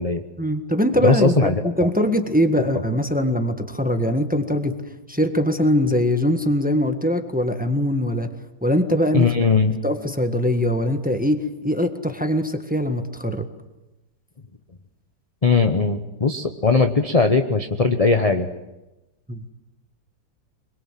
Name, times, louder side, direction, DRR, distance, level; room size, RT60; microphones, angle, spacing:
voice 1, 0.4-4.8 5.1-8.3 8.6-9.3 9.8-13.5 19.3-19.4, equal, 5° right, 7 dB, 1.3 m, -22 dB
voice 2, 1.0-1.6 9.1-9.8 15.4-18.5, left 4 dB, 25° left, 6 dB, 0.8 m, -19 dB
24.5 x 22.5 x 7.6 m, 0.98 s
omnidirectional pair, 2.0 m